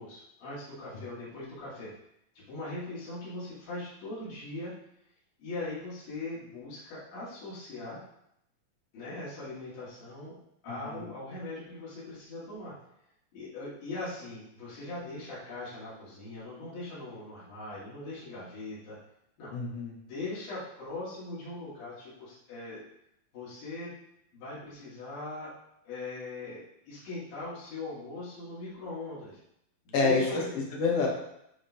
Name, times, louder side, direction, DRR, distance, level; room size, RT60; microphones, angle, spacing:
voice 1, 0.0-1.9 2.4-4.7 5.4-8.0 8.9-10.4 10.6-12.7 13.3-19.0 19.4-19.5 20.0-22.8 23.3-23.9 24.3-25.5 25.9-29.4 29.9-30.5, left 2 dB, 85° left, -10 dB, 3.9 m, -40 dB
voice 2, 19.5-19.9 29.9-31.1, left 4 dB, 60° left, -1 dB, 1.6 m, -27 dB
10.5 x 3.6 x 2.8 m, 0.78 s
omnidirectional pair, 4.0 m